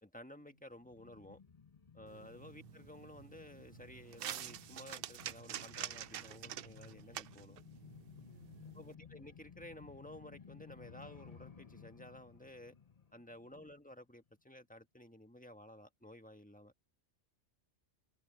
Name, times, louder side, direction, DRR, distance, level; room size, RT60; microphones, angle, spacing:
voice 1, 0.0-1.4 1.9-7.6 8.7-12.7 13.1-16.7, left 1 dB, 5° left, 1.4 m, -54 dB
sound 1, 0.8-14.0 14.3-14.4, left 6 dB, 35° left, 1.1 m, -57 dB
voice 2, 2.0-2.5 8.3-9.2 13.4-13.7, left 2 dB, 85° left, 5.4 m, -69 dB
sound 2, 2.1-8.9, right 11 dB, 60° right, 0.7 m, -47 dB
omnidirectional pair, 1.2 m